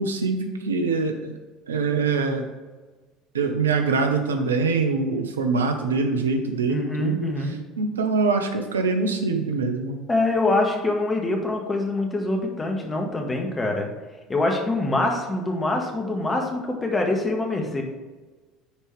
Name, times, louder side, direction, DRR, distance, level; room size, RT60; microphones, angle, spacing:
voice 1, 0.0-1.4 1.7-2.4 3.3-7.3 7.8-10.0, right 4 dB, 85° right, 5 dB, 0.9 m, -24 dB
voice 2, 6.7-7.6 10.1-13.9 14.3-17.8, left 2 dB, 20° left, 2 dB, 1.8 m, -24 dB
9.8 x 4.6 x 3.4 m, 1.3 s
hypercardioid pair, 65°, 0 cm